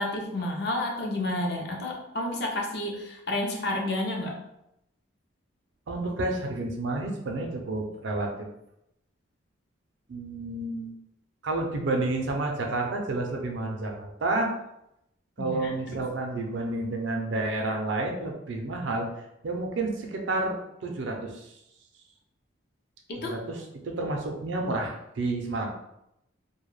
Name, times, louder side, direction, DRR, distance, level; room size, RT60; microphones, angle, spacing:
voice 1, 0.0-4.4 15.4-16.0 23.1-23.4, left 1 dB, 55° left, 0 dB, 0.5 m, -30 dB
voice 2, 5.9-8.5 10.1-10.9 11.4-14.5 15.4-19.1 19.4-21.5 23.2-25.7, right 2 dB, 65° right, 2 dB, 0.4 m, -30 dB
2.2 x 2.1 x 3.1 m, 0.83 s
head